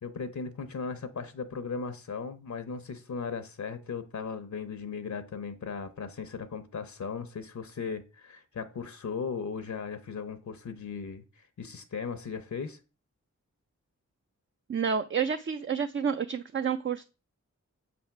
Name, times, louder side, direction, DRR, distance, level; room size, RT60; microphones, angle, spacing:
voice 1, 0.0-12.8, left 5 dB, 70° left, 0.7 m, -37 dB
voice 2, 14.7-17.0, right 6 dB, 40° right, 0.4 m, -29 dB
7.1 x 3.5 x 5.7 m
wide cardioid pair, 65°, 30 cm